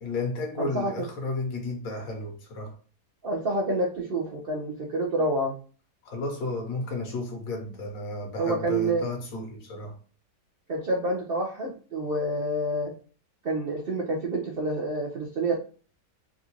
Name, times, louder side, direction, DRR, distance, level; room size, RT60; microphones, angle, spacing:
voice 1, 0.0-2.7 6.0-9.9 15.5-15.6, left 2 dB, 60° left, 1.3 m, -33 dB
voice 2, 0.6-1.1 3.2-5.5 8.4-9.1 10.7-12.9 13.4-15.5, right 1 dB, 65° right, 0.5 m, -28 dB
3.7 x 2.4 x 2.9 m
omnidirectional pair, 1.8 m